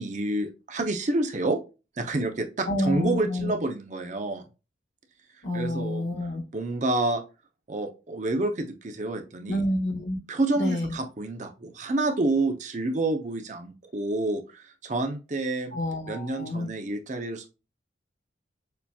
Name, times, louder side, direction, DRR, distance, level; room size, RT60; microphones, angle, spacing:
voice 1, 0.0-1.6 2.0-4.4 5.5-6.0 6.5-7.2 7.7-9.6 10.3-15.8 16.1-17.5, right 2 dB, 40° right, 5 dB, 0.6 m, -28 dB
voice 2, 2.7-3.5 5.4-6.4 9.5-10.2 10.5-11.0 15.7-16.7, left 1 dB, 80° left, 1 dB, 1.4 m, -28 dB
6.6 x 2.8 x 2.3 m, 0.30 s
head